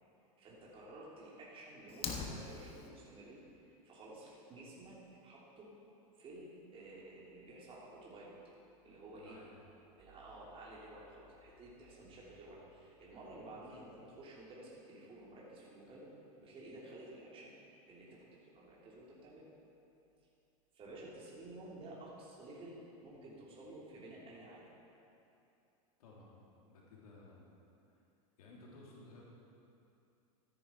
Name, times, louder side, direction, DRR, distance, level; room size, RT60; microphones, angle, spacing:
voice 1, 0.4-5.7 6.2-8.3 8.8-9.4 10.0-16.1 16.4-17.5 17.9-19.4 20.7-24.6, right 1 dB, 30° right, -6 dB, 3.3 m, -52 dB
Fire, 1.9-2.9, left 5 dB, 30° left, 1.3 m, -41 dB
voice 2, 8.9-9.5 26.0-26.4 26.7-27.5 28.4-29.2, left 2 dB, 80° left, -4 dB, 2.9 m, -57 dB
13.5 x 10.0 x 4.6 m, 2.7 s
hypercardioid pair, 120°, 19 cm